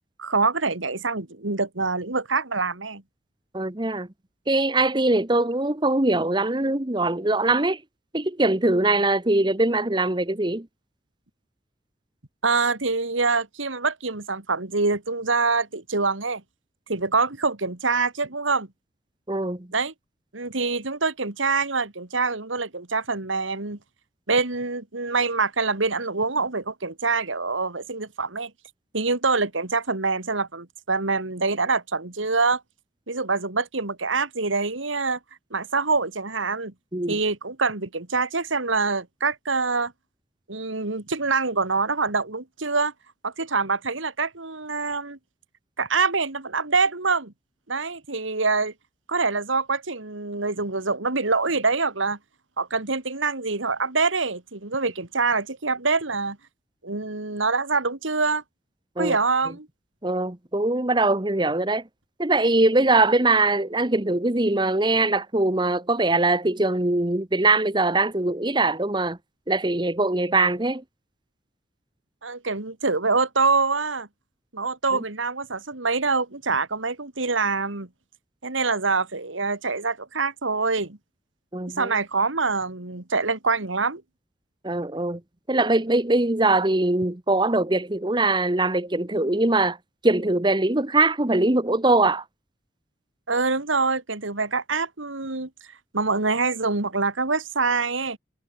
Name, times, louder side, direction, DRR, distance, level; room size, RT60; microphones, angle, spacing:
voice 1, 0.2-3.0 12.4-16.4 16.9-18.7 19.7-19.9 20.3-23.8 24.3-28.5 28.9-32.6 33.1-35.2 35.5-36.7 37.1-39.9 40.5-42.9 43.2-45.2 45.8-47.3 47.7-48.7 49.1-52.2 52.6-56.4 56.8-58.4 59.0-59.7 72.2-74.1 74.5-77.9 78.4-81.0 81.8-84.0 93.3-95.5 95.9-98.2, right 4 dB, 90° right, 2.5 m, -25 dB
voice 2, 3.5-4.1 4.5-7.8 8.1-10.7 19.3-19.7 36.9-37.2 59.0-59.2 60.0-61.8 62.2-69.2 69.5-70.8 74.9-75.0 81.5-81.9 84.6-85.2 85.5-89.8 90.0-92.2, right 2 dB, 25° right, 1.2 m, -22 dB
head